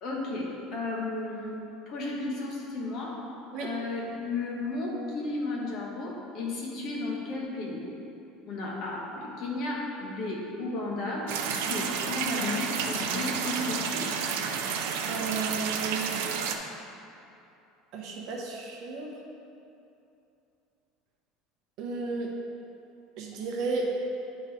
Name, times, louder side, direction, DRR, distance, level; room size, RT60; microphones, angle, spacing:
voice 1, 0.0-3.2 3.6-7.9 8.5-14.1, left 2 dB, 40° left, -3 dB, 1.2 m, -34 dB
sound 1, 11.3-16.6, right 6 dB, 75° right, 0.5 m, -31 dB
voice 2, 15.1-16.1 17.9-19.1 21.8-22.3 23.2-23.9, right 4 dB, 45° right, -1 dB, 0.9 m, -33 dB
9.7 x 3.9 x 4.2 m, 2.7 s
cardioid pair, 175°, 0 cm